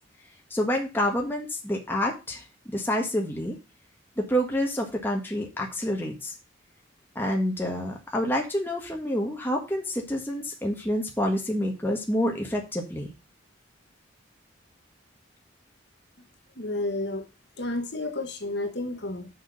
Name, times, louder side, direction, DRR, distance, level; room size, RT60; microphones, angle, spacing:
voice 1, 0.5-2.4 2.7-3.6 4.2-6.3 7.1-13.1, equal, 10° left, 1.5 m, -28 dB
voice 2, 16.6-17.3 17.6-19.3, left 2 dB, 55° left, 1.8 m, -31 dB
6.6 x 6.3 x 6.5 m
head